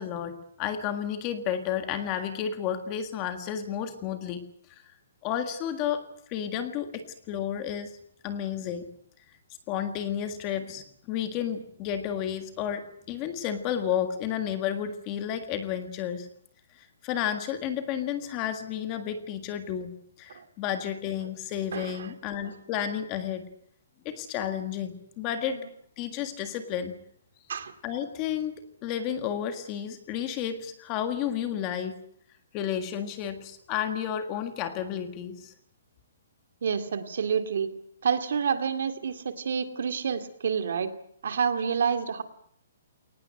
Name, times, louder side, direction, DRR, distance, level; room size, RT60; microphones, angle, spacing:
voice 1, 0.0-4.4 5.2-6.0 6.3-7.9 8.2-8.9 9.7-16.3 16.8-19.9 20.2-23.4 24.1-25.6 26.0-26.9 27.8-32.0 32.5-35.5, left 9 dB, 20° left, 8 dB, 1.7 m, -31 dB
voice 2, 21.7-22.1 25.5-25.6 27.5-27.7 36.6-37.7 38.0-40.9 41.2-42.2, right 6 dB, 55° right, 9 dB, 2.2 m, -28 dB
22.0 x 19.5 x 9.0 m, 0.65 s
hypercardioid pair, 175°, 0 cm